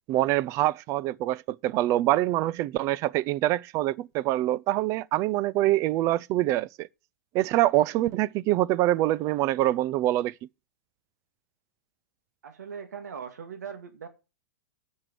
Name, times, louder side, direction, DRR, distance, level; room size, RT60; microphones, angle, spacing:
voice 1, 0.1-6.9 7.3-10.3, right 15 dB, 35° right, 0.5 m, -25 dB
voice 2, 12.4-14.1, right 7 dB, 80° right, 2.0 m, -40 dB
9.8 x 6.4 x 7.4 m
hypercardioid pair, 125°, 9 cm